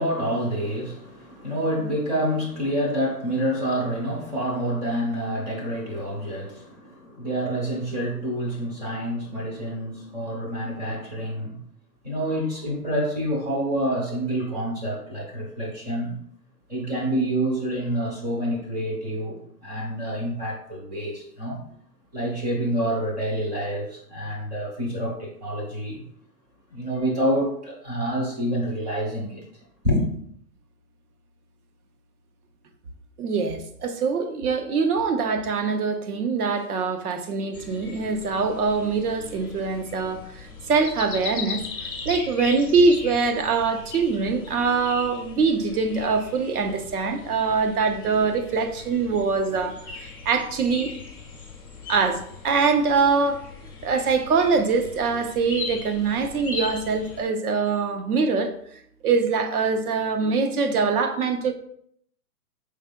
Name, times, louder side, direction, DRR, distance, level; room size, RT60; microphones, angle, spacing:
voice 1, 0.0-11.6 12.0-16.1 16.7-21.6 22.1-26.0 26.7-29.4 29.8-30.0, equal, 25° right, -3 dB, 0.7 m, -27 dB
voice 2, 33.2-41.6 42.1-50.9 51.9-53.4 53.8-61.5, right 4 dB, 70° right, 8 dB, 0.7 m, -23 dB
sound 1, 37.5-57.2, left 5 dB, 15° left, 0.4 m, -39 dB
4.7 x 3.7 x 2.2 m, 0.67 s
hypercardioid pair, 170°, 48 cm